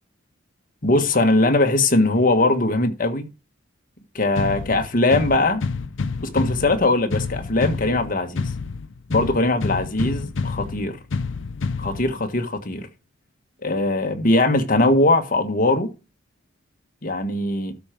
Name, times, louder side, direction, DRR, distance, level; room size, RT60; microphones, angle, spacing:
voice 1, 0.8-3.3 4.1-5.6 6.2-8.4 9.1-11.0 11.8-12.9 13.6-15.9 17.0-17.7, left 2 dB, 45° left, 1.6 m, -20 dB
sound 1, 4.4-12.4, left 4 dB, 80° left, 0.6 m, -29 dB
12.5 x 4.5 x 5.2 m
head